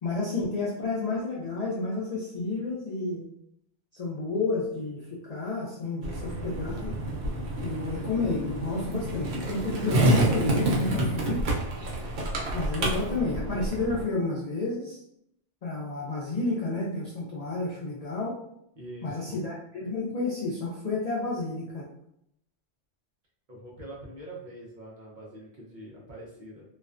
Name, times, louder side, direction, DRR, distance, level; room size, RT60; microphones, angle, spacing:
voice 1, 0.0-3.3 3.9-7.0 7.6-11.4 12.5-15.0 15.6-18.4 19.0-21.9, left 3 dB, 75° left, -4 dB, 0.3 m, -30 dB
Skateboard, 6.0-14.0, right 1 dB, 80° right, 0.9 m, -28 dB
voice 2, 18.8-19.4 23.5-26.6, right 1 dB, 50° right, -4 dB, 0.6 m, -44 dB
2.4 x 2.1 x 2.4 m, 0.75 s
omnidirectional pair, 1.2 m